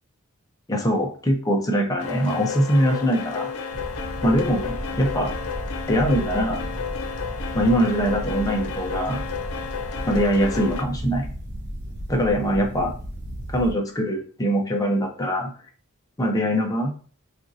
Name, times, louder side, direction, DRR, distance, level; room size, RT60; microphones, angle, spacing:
voice 1, 0.7-3.5 4.2-5.3 5.9-6.6 7.5-9.2 10.1-11.3 12.1-12.9 13.5-15.5 16.2-17.0, equal, 15° left, 1 dB, 0.6 m, -22 dB
sound 1, 2.0-10.8, left 6 dB, 85° left, 0.6 m, -32 dB
sound 2, 3.7-13.7, equal, 50° right, 0.6 m, -34 dB
4.3 x 2.4 x 2.6 m, 0.42 s
head